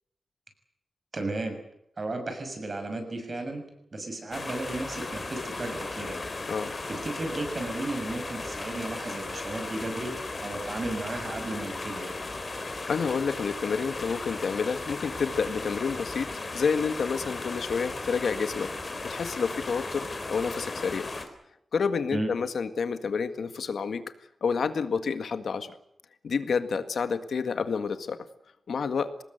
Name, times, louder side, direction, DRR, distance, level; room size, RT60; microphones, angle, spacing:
voice 1, 1.1-1.6 2.0-3.6 3.9-6.2 6.9-10.1 10.4-12.1 22.1-22.3, right 2 dB, 40° right, 6 dB, 6.5 m, -34 dB
sound 1, 4.3-21.3, left 3 dB, 35° left, 3.8 m, -36 dB
voice 2, 12.9-18.7 19.0-21.1 21.7-24.0 24.4-25.7 26.2-28.3 28.7-29.1, left 5 dB, 85° left, 9 dB, 1.8 m, -29 dB
25.0 x 19.5 x 8.0 m, 0.79 s
wide cardioid pair, 160°, 0 cm